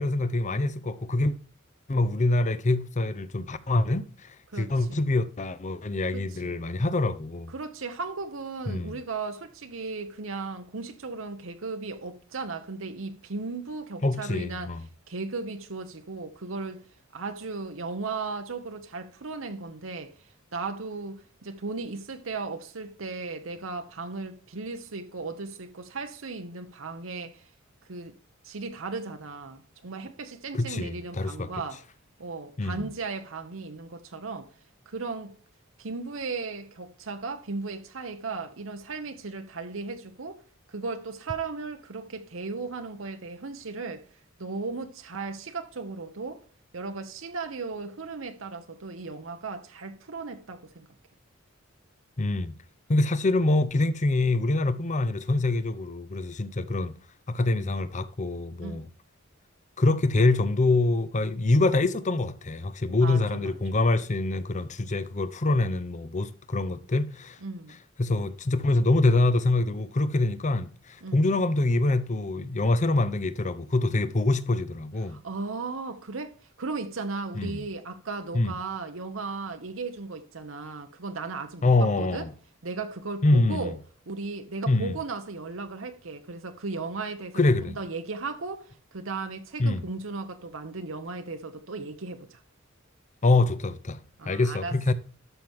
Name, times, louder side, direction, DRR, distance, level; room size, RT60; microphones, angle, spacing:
voice 1, 0.0-1.3 1.9-4.0 4.6-7.5 8.7-9.0 14.0-14.8 30.5-31.5 32.6-32.9 52.2-52.5 52.9-56.9 57.3-58.9 59.8-67.4 68.0-75.2 77.3-77.6 78.3-78.5 81.6-82.3 83.2-83.7 84.7-84.9 87.3-87.8 89.6-89.8 93.2-94.0 94.3-94.9, left 2 dB, 35° left, 0.7 m, -25 dB
voice 2, 4.5-5.0 6.1-6.5 7.5-14.7 15.1-16.8 17.1-27.5 27.9-28.2 28.4-31.8 32.2-34.5 34.9-35.3 35.8-40.4 40.7-44.0 44.4-46.4 46.7-50.9 58.6-58.8 63.0-63.6 67.4-67.8 71.0-71.2 75.1-82.3 82.6-83.7 84.1-87.4 87.8-92.4 94.2-94.9, right 4 dB, 70° right, 0.9 m, -36 dB
12.5 x 6.0 x 3.6 m
head